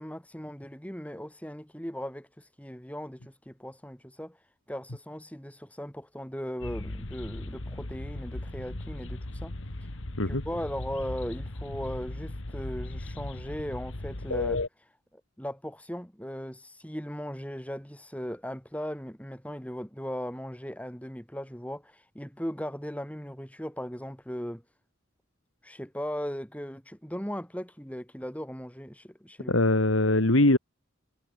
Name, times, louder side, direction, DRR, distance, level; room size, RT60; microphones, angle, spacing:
voice 1, 0.0-4.4 4.7-9.6 10.3-24.6 25.6-29.6, equal, 5° left, 5.9 m, -38 dB
sound 1, 6.6-14.7, left 2 dB, 75° left, 2.0 m, -36 dB
voice 2, 29.5-30.6, left 2 dB, 90° left, 2.6 m, -22 dB
head